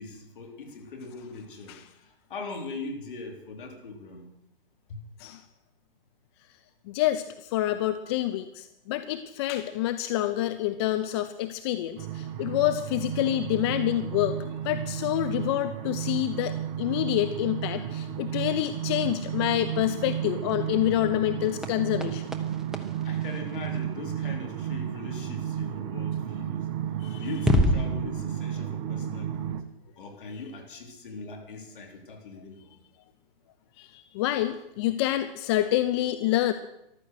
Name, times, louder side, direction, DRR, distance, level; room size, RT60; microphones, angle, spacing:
voice 1, 0.0-4.3 4.9-5.0 23.0-26.7 27.2-29.6 30.0-32.8, left 3 dB, 60° left, 2 dB, 4.0 m, -40 dB
voice 2, 6.9-14.4 14.6-22.2 27.0-27.3 33.8-36.5, left 13 dB, 30° left, 10 dB, 0.6 m, -27 dB
sound 1, 12.0-29.6, right 10 dB, 30° right, 0.8 m, -33 dB
sound 2, 19.6-24.3 26.5-26.6 27.3-27.9, equal, ahead, 0.8 m, -30 dB
14.0 x 12.5 x 6.5 m, 0.83 s
figure-of-eight pair, 125°, 29 cm